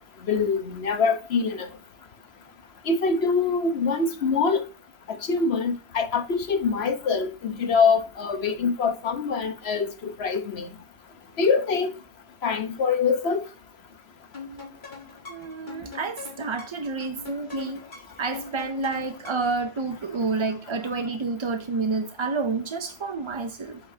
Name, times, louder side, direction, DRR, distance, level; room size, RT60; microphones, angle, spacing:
voice 1, 0.3-1.7 2.9-4.6 5.1-10.7 11.4-11.9 12.4-13.4, left 5 dB, 65° left, 1.1 m, -24 dB
sound 1, 14.3-19.6, left 4 dB, 40° left, 1.9 m, -42 dB
voice 2, 15.3-17.8 18.2-23.8, right 4 dB, 45° right, 0.4 m, -29 dB
8.1 x 7.9 x 2.7 m
omnidirectional pair, 1.2 m